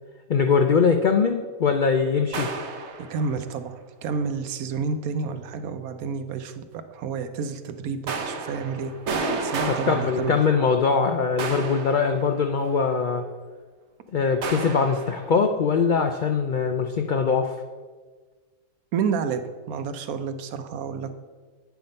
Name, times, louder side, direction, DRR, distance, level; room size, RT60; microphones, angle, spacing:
voice 1, 0.3-2.5 9.7-13.3 14.1-17.5, left 5 dB, 85° left, 6 dB, 0.4 m, -22 dB
sound 1, 2.3-3.4 8.1-10.9 11.4-12.7 14.4-15.3, right 4 dB, 55° right, 1.1 m, -32 dB
voice 2, 3.0-10.3 18.9-19.4 19.7-21.1, right 5 dB, 80° right, 9 dB, 1.2 m, -30 dB
9.2 x 5.8 x 5.2 m, 1.4 s
omnidirectional pair, 1.5 m